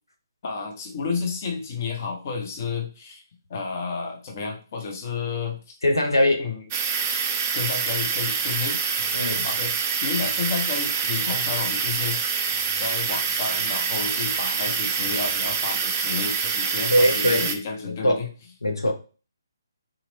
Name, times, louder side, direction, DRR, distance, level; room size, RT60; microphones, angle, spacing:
voice 1, 0.4-3.2 3.5-5.8 6.4-6.6 7.5-8.8 9.4-12.2 12.7-18.3, left 5 dB, 35° left, 0.7 m, -31 dB
voice 2, 5.8-6.4 9.1-9.5 16.9-17.5 18.0-18.2 18.6-18.9, left 1 dB, 80° left, 0.8 m, -21 dB
sound 1, 6.7-17.6, right 6 dB, 25° right, 0.4 m, -26 dB
3.8 x 2.9 x 2.5 m
figure-of-eight pair, 140°, 2 cm